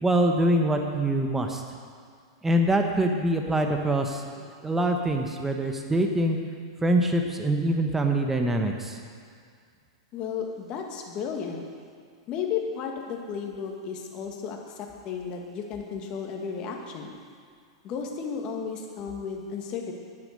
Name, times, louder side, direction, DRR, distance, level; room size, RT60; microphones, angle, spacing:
voice 1, 0.0-1.6 2.4-4.2 4.6-6.4 6.8-9.0, right 1 dB, 10° right, 3 dB, 1.4 m, -24 dB
voice 2, 10.1-11.6 12.3-17.1 17.8-19.9, left 6 dB, 40° left, 1 dB, 2.0 m, -33 dB
10.0 x 9.9 x 6.8 m, 2.2 s
hypercardioid pair, 105°, 2 cm